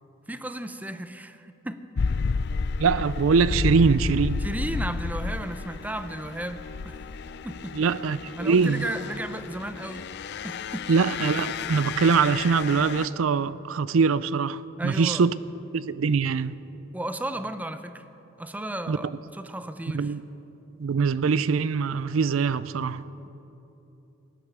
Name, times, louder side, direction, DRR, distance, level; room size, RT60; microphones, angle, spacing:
voice 1, 0.3-1.9 4.4-7.0 7.4-7.8 8.4-10.1 10.4-10.9 14.8-15.3 16.9-18.1 18.4-20.1, right 1 dB, 10° right, 0.6 m, -34 dB
sound 1, 2.0-13.1, left 4 dB, 55° left, 0.4 m, -32 dB
voice 2, 2.8-4.4 7.7-8.8 10.9-15.3 15.7-16.6 18.9-19.0 19.9-20.2 20.8-23.0, right 5 dB, 85° right, 0.5 m, -23 dB
18.5 x 10.0 x 6.7 m
head